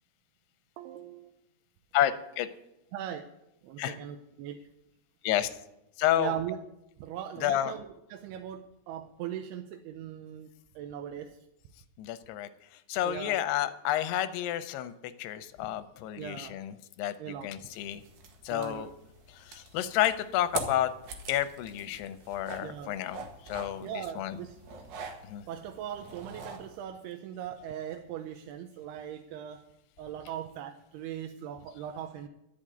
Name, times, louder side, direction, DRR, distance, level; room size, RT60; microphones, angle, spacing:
voice 1, 0.8-1.3 2.9-3.3 3.6-4.6 6.2-6.6 7.0-10.5 10.8-11.4 13.0-13.4 16.2-16.6 17.2-17.7 18.5-18.9 22.6-23.0 23.8-24.6 25.5-29.6 30.0-32.3, right 10 dB, 80° right, 6 dB, 2.6 m, -39 dB
voice 2, 1.9-2.5 3.8-4.0 5.2-5.5 6.0-6.3 7.4-7.7 12.0-12.5 12.9-14.9 15.2-17.1 17.4-18.0 18.4-18.9 19.3-20.9 21.3-23.9 24.2-24.4 25.2-25.5, left 12 dB, 90° left, 12 dB, 2.7 m, -30 dB
sound 1, 17.7-26.8, right 4 dB, 65° right, 2.9 m, -44 dB
12.5 x 6.4 x 8.8 m, 0.86 s
omnidirectional pair, 4.7 m